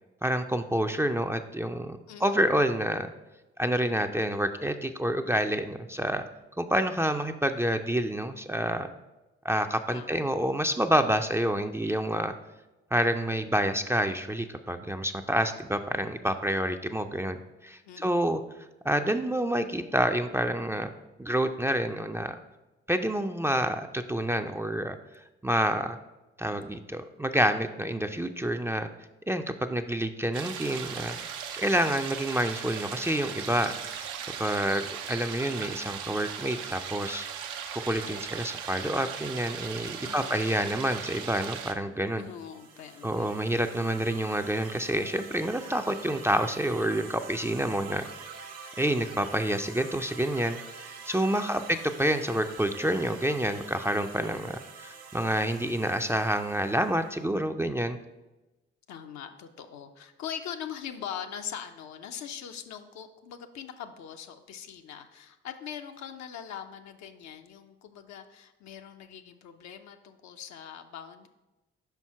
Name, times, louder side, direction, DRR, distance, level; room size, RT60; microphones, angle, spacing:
voice 1, 0.2-3.1 3.6-6.2 6.6-8.9 9.4-12.3 12.9-17.4 17.6-18.4 18.8-20.9 21.2-22.4 22.9-25.0 25.4-26.0 26.4-28.9 29.3-33.7 34.4-37.3 37.7-42.3 43.0-48.0 48.8-58.0, right 1 dB, 10° right, 7 dB, 0.4 m, -28 dB
voice 2, 2.1-2.5 9.9-10.3 17.8-18.3 40.0-40.6 42.1-43.4 51.3-51.7 58.9-71.3, left 8 dB, 65° left, 7 dB, 0.6 m, -42 dB
sound 1, 30.3-41.7, right 8 dB, 80° right, 0.6 m, -38 dB
sound 2, 42.1-57.2, right 5 dB, 55° right, 1.0 m, -46 dB
5.4 x 4.5 x 4.6 m, 1.0 s
hypercardioid pair, 45°, 29 cm